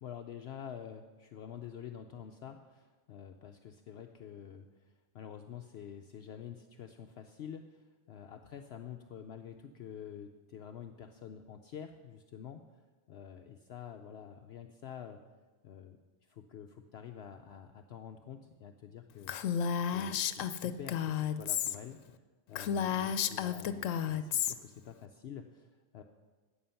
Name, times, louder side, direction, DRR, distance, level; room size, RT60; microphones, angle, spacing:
voice 1, 0.0-4.7 5.1-12.6 13.1-15.2 15.6-16.0 16.3-19.4 19.8-22.0 22.5-26.0, left 8 dB, 65° left, 6 dB, 0.8 m, -48 dB
Female speech woman speaking, 19.3-21.8 22.1-22.2 22.5-24.5, left 8 dB, 90° left, 1.0 m, -32 dB
13.0 x 8.7 x 5.7 m, 1.4 s
omnidirectional pair, 1.3 m